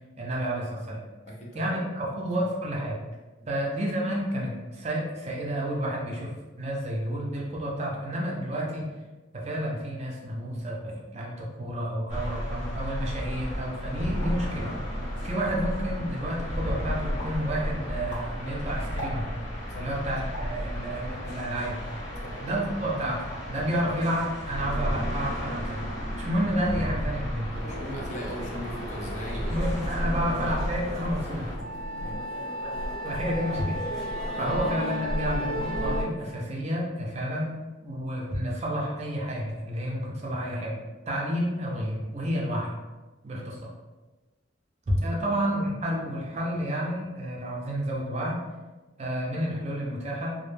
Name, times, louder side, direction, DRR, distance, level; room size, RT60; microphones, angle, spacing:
voice 1, 0.2-1.0 1.5-3.0 3.5-8.9 9.3-14.7 15.2-19.3 19.7-21.8 22.4-25.8 26.2-27.5 29.5-31.5 33.0-33.8 34.4-37.5 37.8-40.8 41.1-42.7 43.2-43.7 44.9-48.4 49.0-50.4, equal, 35° right, -3 dB, 0.4 m, -30 dB
voice 2, 1.2-1.7 2.1-2.3 3.4-3.5 19.7-19.9 22.2-22.4 27.7-30.6 32.0-32.2 43.3-43.5, left 1 dB, 40° left, -2 dB, 0.5 m, -40 dB
sound 1, 12.1-31.5, equal, 65° left, 1.1 m, -33 dB
sound 2, 14.2-14.5 15.0-15.1 15.3-15.8 16.3-16.7 17.2-17.5 17.9-19.6 20.3-20.6 21.2-22.1 22.6-22.8 23.1-23.6 23.8-24.3, right 1 dB, 85° left, 0.9 m, -42 dB
sound 3, 27.5-36.0, equal, ahead, 0.7 m, -33 dB
2.1 x 2.0 x 3.1 m, 1.2 s
head